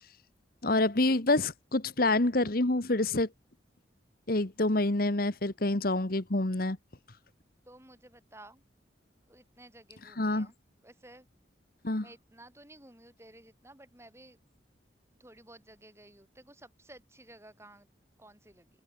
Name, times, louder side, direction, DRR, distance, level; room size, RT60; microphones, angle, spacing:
voice 1, 0.6-3.3 4.3-6.8 10.2-10.5 11.8-12.1, left 2 dB, 50° left, 1.4 m, -27 dB
voice 2, 7.6-8.6 9.3-10.6 10.8-11.3 12.0-14.4 15.2-17.9 18.2-18.7, right 1 dB, 15° right, 8.0 m, -54 dB
open air
head